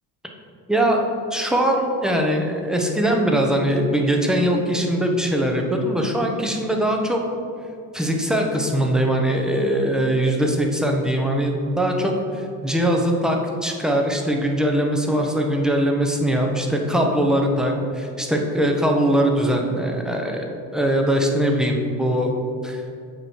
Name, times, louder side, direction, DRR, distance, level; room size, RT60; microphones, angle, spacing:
voice 1, 0.7-7.2 7.9-20.5 20.7-22.3 22.6-22.8, right 1 dB, ahead, 1 dB, 0.7 m, -21 dB
8.0 x 3.2 x 4.4 m, 2.4 s
supercardioid pair, 90°, 45 cm